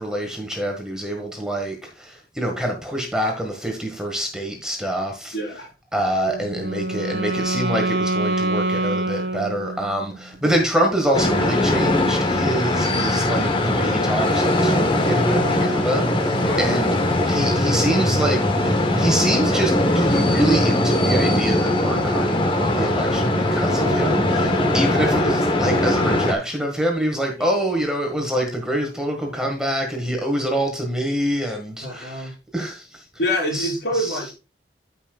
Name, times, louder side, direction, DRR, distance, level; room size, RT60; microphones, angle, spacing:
voice 1, 0.0-5.3 5.9-16.9 17.2-33.0 33.5-34.2, right 1 dB, 5° right, 1.6 m, -26 dB
voice 2, 5.3-5.7 13.8-14.1 16.4-16.6 24.7-25.0 31.8-32.3 33.2-34.3, equal, 65° left, 4.6 m, -26 dB
Wind instrument woodwind instrument, 6.2-10.1, right 2 dB, 70° right, 1.7 m, -25 dB
sound 1, 11.1-26.3, left 1 dB, 25° left, 1.0 m, -20 dB
14.0 x 5.7 x 2.3 m
head